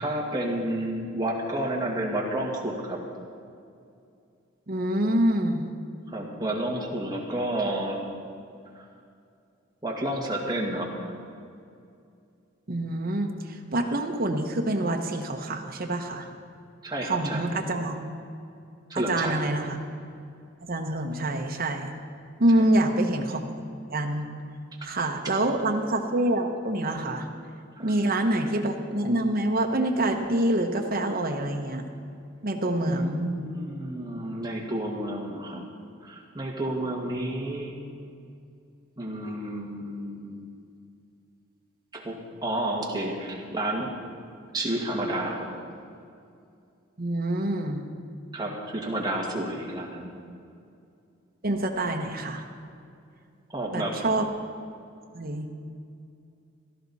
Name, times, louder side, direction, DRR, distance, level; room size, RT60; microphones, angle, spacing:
voice 1, 0.0-3.0 6.1-8.0 8.8-8.9 9.8-11.1 16.8-17.5 18.9-19.5 22.6-22.7 24.8-24.9 27.8-27.9 32.8-35.6 36.0-37.8 39.0-40.4 41.9-43.9 44.5-45.5 48.3-50.1 53.5-54.0, right 1 dB, 20° right, -2 dB, 1.9 m, -30 dB
voice 2, 4.7-5.6 12.7-16.3 17.0-18.2 18.9-19.8 20.6-21.9 22.4-23.5 23.9-24.3 24.8-27.3 27.8-31.8 32.4-33.2 47.0-47.9 51.4-52.4 53.7-54.3 55.1-55.5, right 1 dB, 50° right, 2 dB, 1.0 m, -26 dB
16.5 x 12.5 x 4.2 m, 2.5 s
head